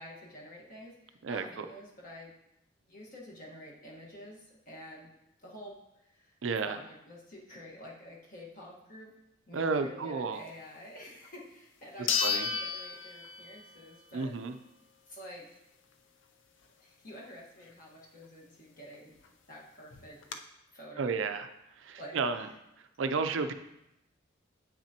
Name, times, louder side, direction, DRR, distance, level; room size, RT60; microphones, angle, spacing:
voice 1, 0.0-2.3 2.9-5.1 5.4-9.1 9.5-14.3 15.1-15.5 16.8-19.2 19.5-20.2 20.7-21.2 22.0-22.2, equal, 45° left, -3 dB, 1.4 m, -49 dB
voice 2, 1.2-1.7 6.4-6.8 9.5-10.4 12.0-12.5 14.1-14.6 21.0-21.5 21.7-22.5 22.8-23.5, right 4 dB, 70° right, 8 dB, 0.5 m, -32 dB
sound 1, 11.2-11.3 12.1-13.8 14.2-14.3 18.9-19.0 19.2-19.3 19.9-20.4, left 6 dB, 65° left, 0.5 m, -32 dB
8.3 x 5.9 x 2.9 m, 0.85 s
head